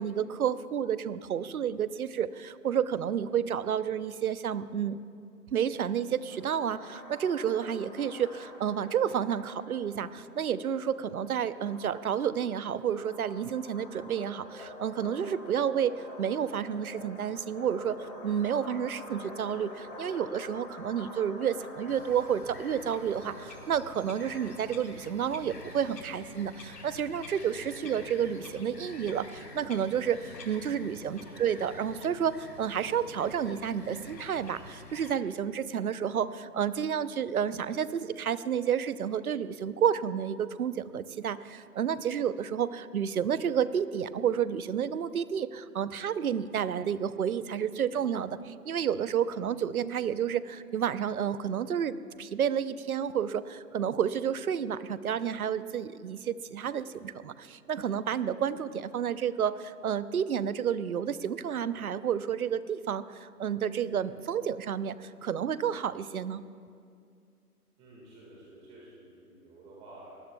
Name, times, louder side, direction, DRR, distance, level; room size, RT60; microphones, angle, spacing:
voice 1, 0.0-5.0 5.5-66.4, right 8 dB, 65° right, 15 dB, 0.8 m, -30 dB
sound 1, 6.3-25.6, left 2 dB, 50° left, 4.9 m, -47 dB
Bird vocalization bird call bird song, 21.9-35.2, left 3 dB, 85° left, 2.8 m, -48 dB
voice 2, 30.9-31.5 67.8-70.2, right 2 dB, 15° right, -5 dB, 1.8 m, -52 dB
24.5 x 19.5 x 2.3 m, 2.3 s
hypercardioid pair, 155°, 47 cm